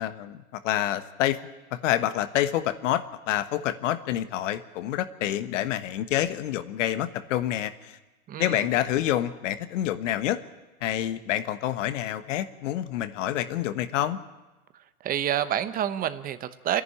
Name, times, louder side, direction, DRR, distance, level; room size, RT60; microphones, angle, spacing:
voice 1, 0.0-1.4 1.7-8.0 8.4-10.4 10.8-14.2, left 12 dB, 60° left, 12 dB, 1.4 m, -27 dB
voice 2, 8.3-8.7 14.7-16.8, right 10 dB, 20° right, 12 dB, 0.9 m, -29 dB
27.5 x 11.0 x 9.9 m, 1.1 s
hypercardioid pair, 130°, 43 cm